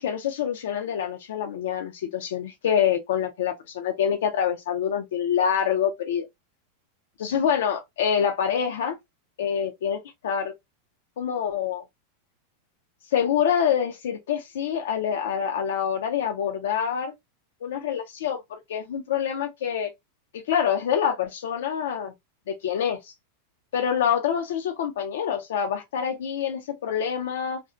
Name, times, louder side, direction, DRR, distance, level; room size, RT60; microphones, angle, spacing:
voice 1, 0.0-6.3 7.2-9.0 9.4-10.5 11.2-11.8 13.1-17.1 17.6-19.9 20.3-22.1 22.5-23.1 23.7-27.6, left 8 dB, 80° left, 0.5 m, -26 dB
2.5 x 2.1 x 2.5 m
supercardioid pair, 165°, 0 cm